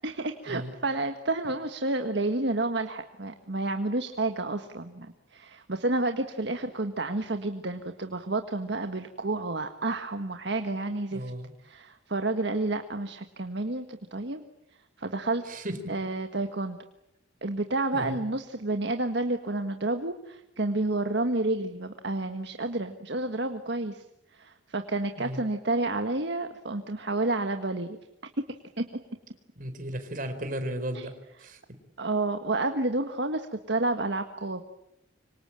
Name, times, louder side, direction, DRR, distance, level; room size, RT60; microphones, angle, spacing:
voice 1, 0.0-11.3 11.6-14.4 15.0-15.4 15.9-16.8 17.4-24.0 24.3-28.0 28.8-28.9 30.9-31.1 32.0-34.6, right 2 dB, 60° right, 7 dB, 1.6 m, -30 dB
voice 2, 11.1-11.5 15.5-15.9 17.9-18.2 25.2-25.4 29.6-31.8, right 1 dB, 45° right, 8 dB, 4.3 m, -35 dB
26.5 x 25.0 x 8.9 m, 0.82 s
head